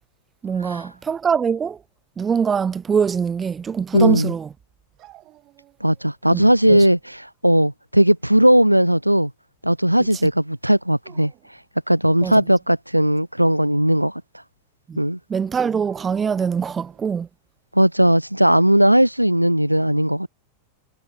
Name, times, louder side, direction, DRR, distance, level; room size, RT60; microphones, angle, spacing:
voice 1, 0.4-1.8 2.2-4.5 6.3-6.9 12.2-12.4 14.9-15.0 15.3-17.3, right 6 dB, 20° right, 0.4 m, -23 dB
voice 2, 3.9-4.3 5.8-9.3 9.6-11.3 11.9-14.1 15.0-15.2 17.7-20.3, right 1 dB, 90° right, 0.6 m, -17 dB
Dog, 5.0-6.1 6.5-7.2 8.2-9.0 10.9-11.6 15.8-17.2, right 16 dB, 35° right, 7.5 m, -50 dB
figure-of-eight pair, 90°, 0 cm